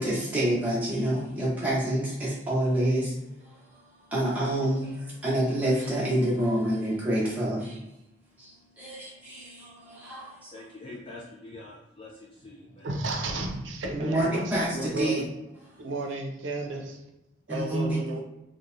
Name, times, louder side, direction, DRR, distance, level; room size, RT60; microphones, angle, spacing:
voice 1, 0.0-3.8 4.1-7.8 8.4-10.5 14.0-15.2 15.7-15.8 17.5-18.0, right 1 dB, 10° right, 0.8 m, -28 dB
voice 2, 10.5-13.3, left 2 dB, 30° left, 0.3 m, -45 dB
voice 3, 12.8-15.3 15.8-17.0 17.5-18.2, right 2 dB, 75° right, 0.5 m, -33 dB
3.0 x 2.1 x 2.5 m
head